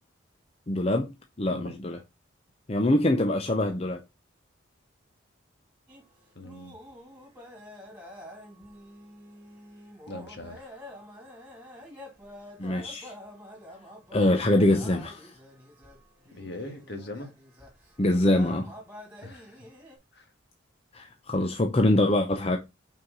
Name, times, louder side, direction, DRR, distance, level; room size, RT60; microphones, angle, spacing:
voice 1, 0.7-2.0 2.7-4.0 12.6-13.1 14.1-15.3 18.0-18.7 20.9-22.6, left 1 dB, 30° left, 0.6 m, -24 dB
sound 1, 5.9-20.0, left 1 dB, 10° right, 2.4 m, -47 dB
voice 2, 6.3-6.7 10.1-10.8 16.3-17.3 19.2-19.6 20.1-20.3, left 2 dB, 55° left, 1.6 m, -41 dB
5.9 x 4.7 x 3.7 m
head